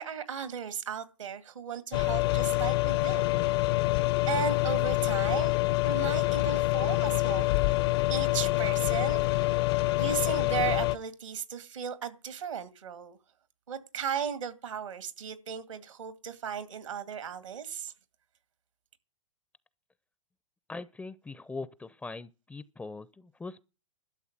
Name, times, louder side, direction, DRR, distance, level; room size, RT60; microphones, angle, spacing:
voice 1, 0.0-3.3 4.3-5.5 5.8-9.6 10.0-13.2 13.7-17.9, right 8 dB, 80° right, 2.2 m, -36 dB
sound 1, 1.9-11.0, left 18 dB, 55° left, 0.8 m, -26 dB
voice 2, 20.7-23.6, left 3 dB, 10° left, 0.6 m, -41 dB
12.5 x 7.0 x 9.6 m
hypercardioid pair, 110°, 16 cm